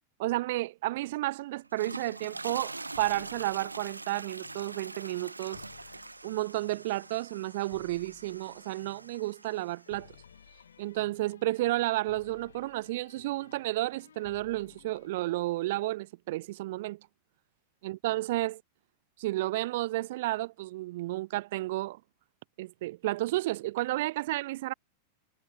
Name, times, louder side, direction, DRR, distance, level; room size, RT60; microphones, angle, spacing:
voice 1, 0.2-5.6 6.2-10.1 10.8-17.0 17.8-18.6 19.2-22.0 22.6-24.7, right 18 dB, 55° right, 0.5 m, -32 dB
sound 1, 1.6-9.9, right 3 dB, 80° right, 1.0 m, -44 dB
sound 2, 1.7-15.1, left 8 dB, 65° left, 7.2 m, -57 dB
figure-of-eight pair, 90°, 0 cm